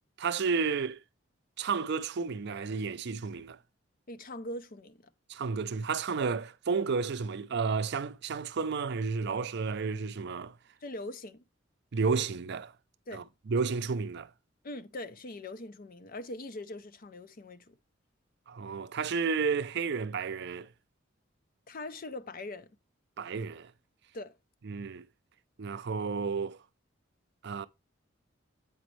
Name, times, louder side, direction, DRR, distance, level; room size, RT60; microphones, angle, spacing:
voice 1, 0.2-1.0 1.6-3.6 5.3-10.5 11.9-12.7 13.1-14.3 18.5-20.7 23.2-23.7 24.6-25.1 25.6-26.6 27.4-27.7, right 5 dB, 60° right, 0.5 m, -32 dB
voice 2, 4.1-5.1 10.8-11.4 13.1-13.2 14.6-17.8 21.7-22.7 24.1-24.3, left 2 dB, 45° left, 0.6 m, -42 dB
7.9 x 5.2 x 3.1 m
head